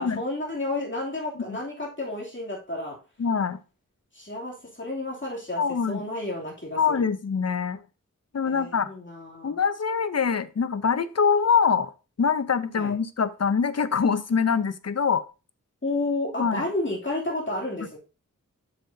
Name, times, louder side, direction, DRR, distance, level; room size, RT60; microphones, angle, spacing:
voice 1, 0.0-3.0 4.1-5.6 5.9-7.1 8.4-9.6 12.8-12.9 15.8-18.0, left 2 dB, 35° left, -2 dB, 2.8 m, -31 dB
voice 2, 3.2-3.6 5.6-6.0 6.8-7.8 8.3-8.9 9.4-11.9 12.2-15.2 16.4-16.7, left 6 dB, 50° left, 14 dB, 0.6 m, -24 dB
7.6 x 6.7 x 2.7 m, 0.31 s
wide cardioid pair, 50°, 33 cm